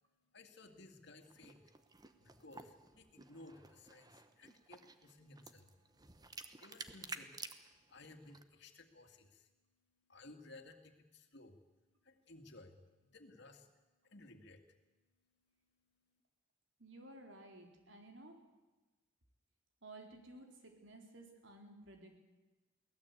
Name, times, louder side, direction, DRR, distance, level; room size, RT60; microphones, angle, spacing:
voice 1, 0.2-1.7 2.2-5.9 6.2-13.7 14.0-14.9 16.1-16.2, left 2 dB, 60° left, 6 dB, 2.4 m, -59 dB
sound 1, 1.2-8.4, right 4 dB, 20° right, 1.1 m, -53 dB
voice 2, 16.8-18.5 19.8-22.2, right 2 dB, 75° right, 3 dB, 4.0 m, -55 dB
23.0 x 17.5 x 8.4 m, 1.1 s
head